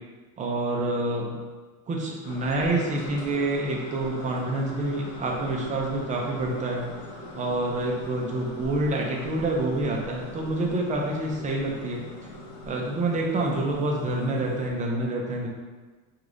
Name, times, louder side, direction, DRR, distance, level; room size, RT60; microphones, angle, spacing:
voice 1, 0.4-1.4 1.9-6.9 7.4-12.0 12.7-15.5, right 2 dB, 20° right, -1 dB, 0.3 m, -27 dB
sound 1, 2.2-14.7, left 2 dB, 70° left, 1.0 m, -42 dB
5.0 x 2.3 x 3.7 m, 1.3 s
cardioid pair, 160°, 40 cm